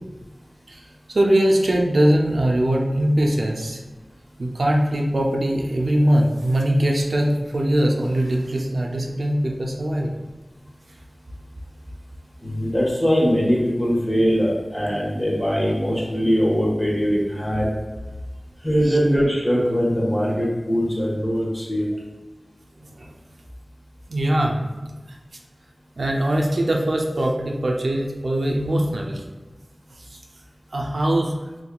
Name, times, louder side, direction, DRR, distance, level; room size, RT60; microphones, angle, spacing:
voice 1, 1.1-3.8 4.4-10.1 18.9-19.0 22.8-23.1 24.1-24.6 26.0-29.2 30.1-30.2 30.7-31.3, right 1 dB, 90° right, 0 dB, 0.5 m, -21 dB
voice 2, 12.4-17.7 18.6-21.8, equal, 20° left, -5 dB, 1.4 m, -21 dB
3.6 x 3.1 x 2.3 m, 1.3 s
wide cardioid pair, 40°, 0 cm